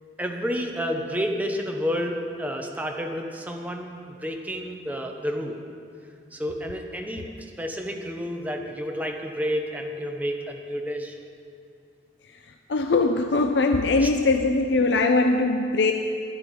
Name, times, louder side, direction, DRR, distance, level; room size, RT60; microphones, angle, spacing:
voice 1, 0.2-5.6 6.3-7.3 7.6-11.1 14.0-14.1, equal, 10° right, 2 dB, 0.8 m, -30 dB
voice 2, 12.7-15.9, left 3 dB, 70° left, 5 dB, 0.5 m, -21 dB
12.0 x 10.5 x 4.7 m, 2.4 s
head